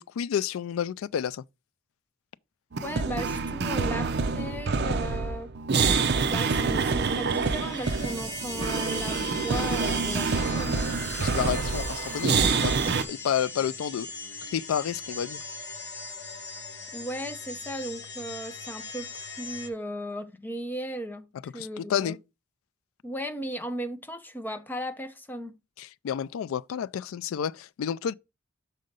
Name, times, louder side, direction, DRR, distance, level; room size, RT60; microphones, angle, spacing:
voice 1, 0.0-1.4 11.2-12.8 13.1-14.1 14.5-15.4 21.4-22.2 25.8-28.1, left 8 dB, 80° left, 0.3 m, -30 dB
sound 1, 2.7-13.0, right 4 dB, 50° right, 0.6 m, -27 dB
voice 2, 2.8-5.5 6.3-10.9 16.9-21.3 21.5-22.2 23.0-25.6, equal, 10° left, 0.5 m, -36 dB
sound 2, 7.0-19.7, left 4 dB, 55° left, 1.4 m, -40 dB
6.5 x 3.8 x 5.2 m
head